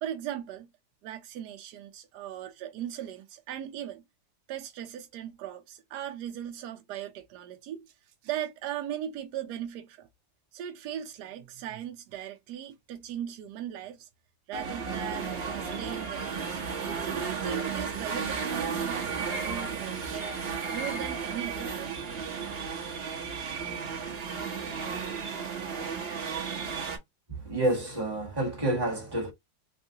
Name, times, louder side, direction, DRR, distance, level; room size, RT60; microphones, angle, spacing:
voice 1, 0.0-0.7 1.0-4.0 4.5-7.9 8.2-10.1 10.5-14.1 14.5-16.6 17.0-20.4 20.7-22.0, right 10 dB, 75° right, 1.0 m, -38 dB
sound 1, 14.5-27.0, right 5 dB, 55° right, 0.7 m, -34 dB
voice 2, 27.3-29.3, right 1 dB, 15° right, 1.2 m, -29 dB
3.6 x 2.3 x 2.7 m
omnidirectional pair, 2.1 m